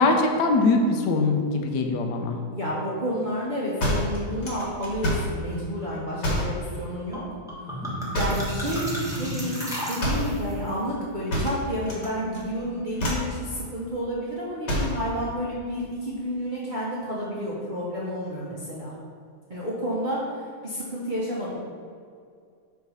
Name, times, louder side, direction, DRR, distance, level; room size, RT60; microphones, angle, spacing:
voice 1, 0.0-2.4, left 3 dB, 65° left, 3 dB, 1.2 m, -22 dB
voice 2, 2.5-7.2 8.1-18.9 19.5-20.2 20.6-21.5, equal, 45° right, -7 dB, 0.6 m, -30 dB
sound 1, 3.8-5.4 6.2-6.6 8.1-8.6 10.0-10.4 11.3-12.1 12.3-12.6 13.0-13.4 14.7-15.0, equal, 40° left, 1.4 m, -27 dB
sound 2, 7.1-7.2 7.5-10.5, equal, ahead, 0.9 m, -32 dB
4.8 x 4.5 x 5.5 m, 2.3 s
omnidirectional pair, 2.2 m